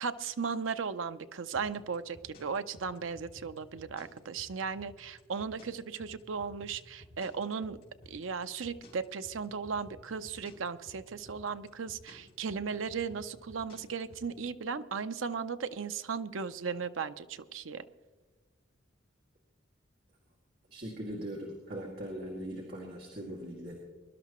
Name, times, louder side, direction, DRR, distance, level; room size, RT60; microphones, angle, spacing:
voice 1, 0.0-7.8 8.1-17.8, right 5 dB, 85° right, 11 dB, 0.6 m, -36 dB
sound 1, 1.5-14.3, left 1 dB, 50° left, 4.1 m, -54 dB
voice 2, 20.7-23.7, right 1 dB, 50° right, -3 dB, 2.3 m, -40 dB
22.5 x 12.0 x 3.0 m, 1.3 s
head